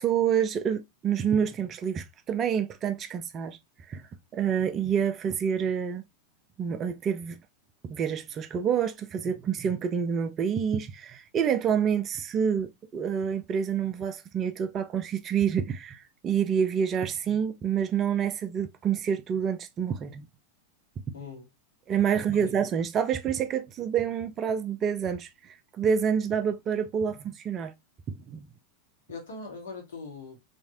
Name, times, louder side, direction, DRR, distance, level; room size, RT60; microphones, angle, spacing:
voice 1, 0.0-3.6 3.9-4.0 4.3-6.0 6.6-7.4 7.9-20.3 21.1-21.2 21.9-25.3 25.8-27.7 28.1-28.4, right 7 dB, 30° right, 0.4 m, -27 dB
voice 2, 21.1-21.5 22.1-22.5 29.1-30.4, left 3 dB, 65° left, 1.6 m, -41 dB
3.3 x 2.9 x 2.8 m
figure-of-eight pair, 90°, 0 cm